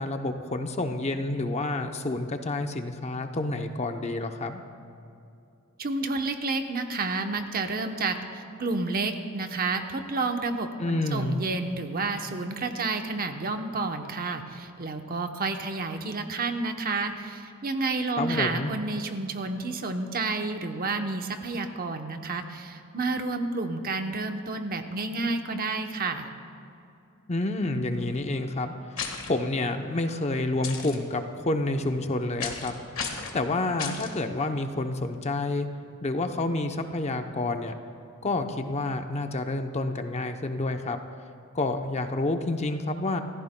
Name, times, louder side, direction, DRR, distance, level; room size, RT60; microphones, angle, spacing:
voice 1, 0.0-4.6 10.8-11.4 18.2-18.7 27.3-28.7 29.3-32.7 33.3-35.7 36.0-37.7 38.2-41.0 41.5-43.2, left 2 dB, 30° left, 6 dB, 0.7 m, -29 dB
voice 2, 5.8-26.3, right 3 dB, 45° right, 6 dB, 0.8 m, -30 dB
sound 1, 29.0-29.3 30.6-30.9 32.4-32.7 32.9-33.3 33.8-34.1, left 6 dB, 65° left, 1.5 m, -33 dB
28.0 x 14.5 x 2.2 m, 2.6 s
head